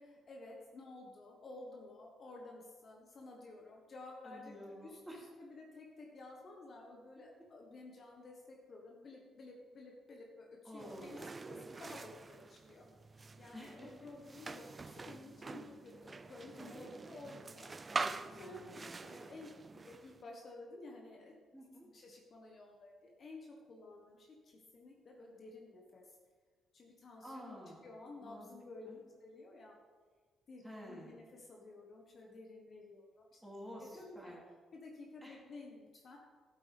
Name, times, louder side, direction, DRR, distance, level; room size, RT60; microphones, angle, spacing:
voice 1, 0.0-4.5 4.8-12.9 13.2-17.7 18.4-21.4 21.9-26.0 26.7-27.6 27.8-28.9 29.2-29.7 30.5-33.4 33.8-34.3 34.7-36.2, left 2 dB, 50° left, 0 dB, 1.5 m, -53 dB
voice 2, 4.2-5.2 10.6-11.3 13.5-13.9 17.9-19.0 21.5-21.9 27.2-27.8 28.2-28.5 28.9-29.0 30.6-31.1 33.4-34.4 35.2-35.4, equal, ahead, -4 dB, 3.1 m, -50 dB
sound 1, 10.8-20.2, right 3 dB, 30° right, 0.4 m, -45 dB
11.5 x 8.3 x 3.6 m, 1.5 s
cardioid pair, 90°, 0 cm